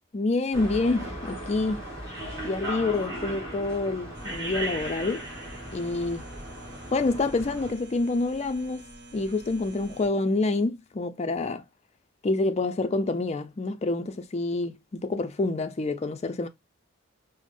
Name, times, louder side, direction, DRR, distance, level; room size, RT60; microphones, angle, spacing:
voice 1, 0.1-1.8 2.4-5.2 5.7-6.2 6.9-8.9 9.1-11.6 12.2-16.5, left 3 dB, 30° left, 0.4 m, -27 dB
sound 1, 0.5-7.7, right 1 dB, 15° right, 2.2 m, -37 dB
sound 2, 4.1-10.1, right 1 dB, 50° right, 0.9 m, -47 dB
4.9 x 2.0 x 2.5 m
head